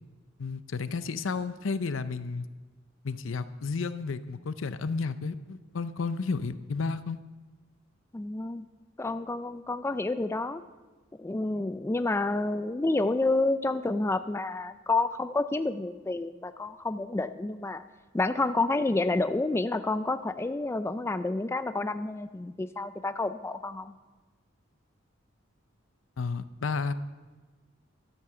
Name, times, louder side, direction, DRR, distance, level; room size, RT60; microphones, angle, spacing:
voice 1, 0.4-2.4 3.0-7.2 26.2-26.9, left 4 dB, 80° left, 13 dB, 0.6 m, -32 dB
voice 2, 8.1-8.7 9.0-10.6 11.2-17.8 18.1-23.9, left 2 dB, 15° left, 11 dB, 0.3 m, -29 dB
12.5 x 8.6 x 6.7 m, 1.3 s
head